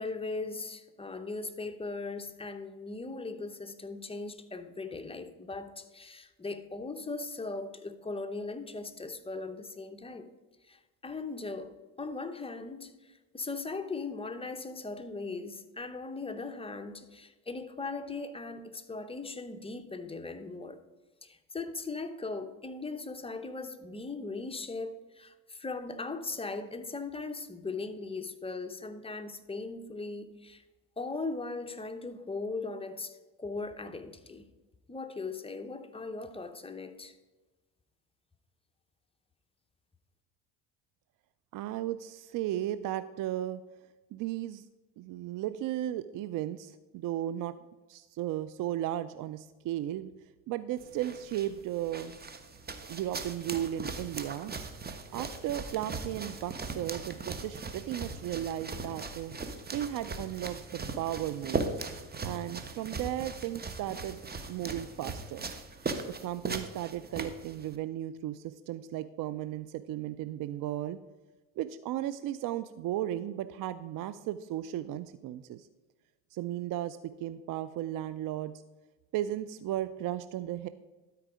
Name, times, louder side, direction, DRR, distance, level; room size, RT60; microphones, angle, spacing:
voice 1, 0.0-10.3 10.6-20.8 21.2-30.6 31.0-34.5 34.9-37.2, left 3 dB, 10° left, 0.8 m, -39 dB
voice 2, 41.5-43.6 44.1-44.6 45.0-47.5 47.9-50.1 50.5-52.2 52.9-54.5 55.1-59.3 59.7-61.7 62.2-64.2 64.5-65.5 66.2-71.0 71.6-75.7 76.3-78.5 79.1-80.7, right 12 dB, 45° right, 0.5 m, -35 dB
sound 1, 50.8-67.8, right 4 dB, 20° right, 1.0 m, -39 dB
12.5 x 4.6 x 5.0 m
hypercardioid pair, 75°, 45 cm